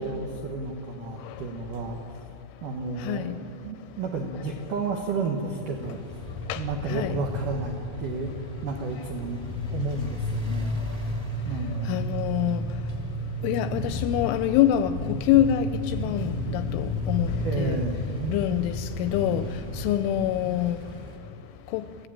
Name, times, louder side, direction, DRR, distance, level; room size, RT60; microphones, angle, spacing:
voice 1, 0.0-2.1 2.6-3.3 3.6-6.2 6.6-8.3 8.6-11.2 11.4-12.7 17.4-18.0, right 3 dB, 80° right, 2 dB, 1.8 m, -32 dB
sound 1, 5.7-21.1, left 1 dB, 20° right, 1.0 m, -32 dB
voice 2, 11.9-12.6 13.4-15.7 15.9-17.3 17.6-17.7 18.3-18.7 19.0-19.4 19.8-20.8 21.7-21.8, left 11 dB, 80° left, 11 dB, 2.9 m, -25 dB
27.5 x 15.5 x 8.9 m, 2.8 s
omnidirectional pair, 5.9 m